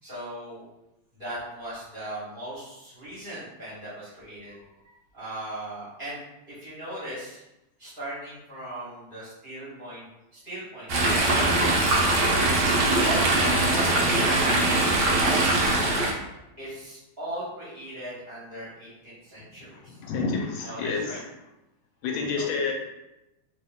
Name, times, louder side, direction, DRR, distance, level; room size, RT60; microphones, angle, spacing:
voice 1, 0.0-0.6 1.1-4.7 5.1-6.2 6.5-7.4 7.8-10.1 10.3-14.5 15.1-15.5 16.6-20.0 20.6-21.2 22.3-22.5, right 1 dB, 30° right, -10 dB, 1.6 m, -38 dB
Chatter / Stream, 10.9-16.1, right 2 dB, 65° right, 1.3 m, -22 dB
voice 2, 19.8-21.2 22.0-22.7, left 4 dB, 85° left, 1 dB, 1.4 m, -29 dB
3.3 x 2.9 x 3.5 m, 0.94 s
omnidirectional pair, 2.2 m